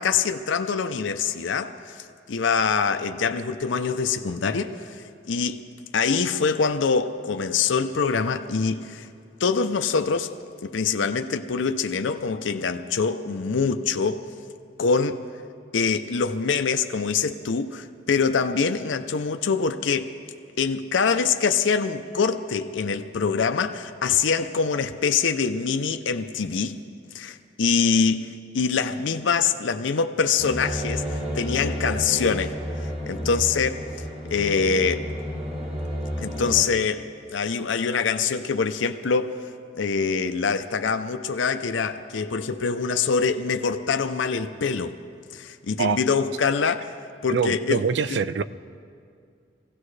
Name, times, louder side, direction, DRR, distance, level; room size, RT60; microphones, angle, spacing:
voice 1, 0.0-5.0 5.3-5.6 5.9-9.1 9.4-10.3 10.6-14.3 14.8-15.2 15.7-20.1 20.6-26.8 27.1-28.3 28.5-32.6 32.8-33.8 34.3-35.1 36.2-37.0 37.3-39.4 39.8-45.0 45.3-46.9 47.2-47.8 48.1-48.2, left 5 dB, 80° left, 0.6 m, -24 dB
sound 1, 30.4-36.6, equal, 30° right, 1.6 m, -31 dB
voice 2, 47.3-48.4, right 6 dB, 65° right, 0.4 m, -24 dB
23.5 x 16.5 x 3.3 m
head